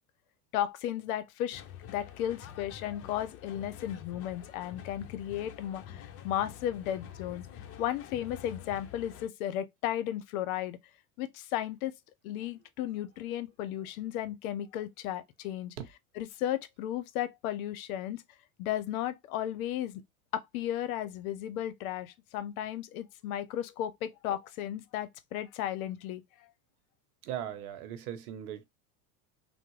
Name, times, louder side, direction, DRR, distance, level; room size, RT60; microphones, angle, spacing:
voice 1, 0.5-7.5 7.8-10.8 11.2-11.9 12.2-15.8 16.2-18.2 18.6-20.0 20.3-26.2, left 11 dB, 70° left, 0.6 m, -34 dB
sound 1, 1.5-9.3, left 10 dB, 35° left, 0.6 m, -47 dB
voice 2, 27.2-28.6, right 10 dB, 75° right, 0.9 m, -38 dB
3.5 x 2.0 x 3.1 m
hypercardioid pair, 100°, 44 cm